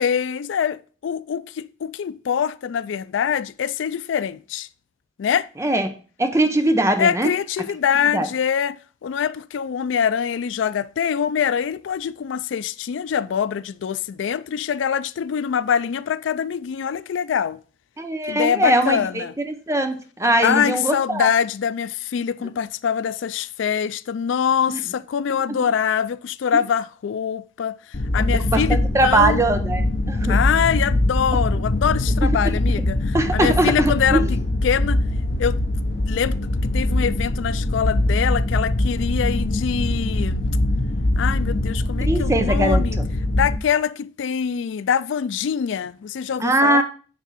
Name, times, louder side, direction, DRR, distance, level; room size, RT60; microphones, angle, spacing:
voice 1, 0.0-4.7 5.2-5.5 7.0-17.6 18.3-19.3 20.4-27.8 28.1-29.4 30.2-34.4 34.6-35.0 35.4-35.6 36.1-36.4 36.6-40.4 41.2-43.0 43.3-46.8, left 7 dB, 85° left, 0.3 m, -24 dB
voice 2, 5.6-5.9 6.2-7.3 8.1-8.3 18.0-21.3 24.7-24.8 25.5-25.6 28.2-30.4 31.3-31.4 32.2-32.3 33.1-34.2 42.0-43.0 46.4-46.8, right 1 dB, 15° right, 0.8 m, -21 dB
sound 1, 27.9-43.6, left 1 dB, 60° left, 1.0 m, -22 dB
9.4 x 3.6 x 5.7 m
head